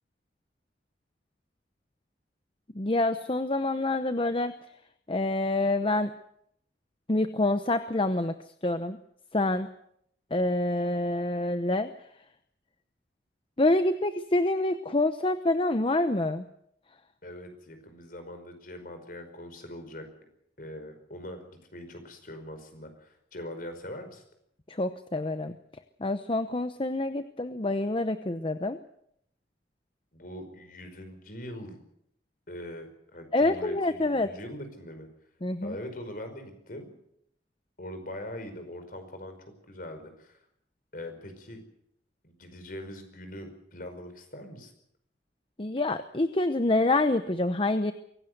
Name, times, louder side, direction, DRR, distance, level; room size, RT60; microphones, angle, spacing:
voice 1, 2.8-4.5 5.1-6.1 7.1-8.3 8.6-9.0 9.3-9.7 10.3-11.9 13.6-16.4 24.7-25.5 26.0-28.8 33.3-34.3 35.4-35.7 45.6-47.9, left 2 dB, 30° left, 10 dB, 0.8 m, -26 dB
voice 2, 17.2-20.1 20.6-24.2 30.1-31.8 32.5-35.1 35.6-37.0 37.8-39.4 39.7-40.4 40.9-41.6 42.2-44.7, left 1 dB, 50° left, 7 dB, 5.3 m, -42 dB
23.5 x 17.5 x 8.0 m, 0.73 s
head